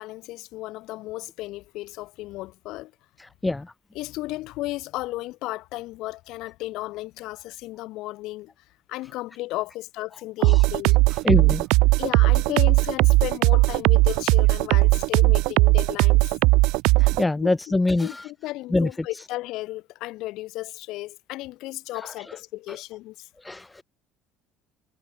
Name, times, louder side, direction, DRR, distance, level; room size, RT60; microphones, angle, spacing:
voice 1, 0.0-2.9 4.0-8.5 8.9-11.0 12.0-16.2 17.4-17.8 18.0-23.3, left 18 dB, 70° left, 2.0 m, -34 dB
voice 2, 3.2-3.7 10.4-10.6 11.2-11.7 17.0-18.2 18.7-18.9 22.0-22.4 22.7-22.8 23.4-23.8, left 2 dB, 10° left, 0.6 m, -25 dB
sound 1, 10.4-17.2, right 24 dB, 80° right, 0.7 m, -18 dB
cardioid pair, 120°, 0 cm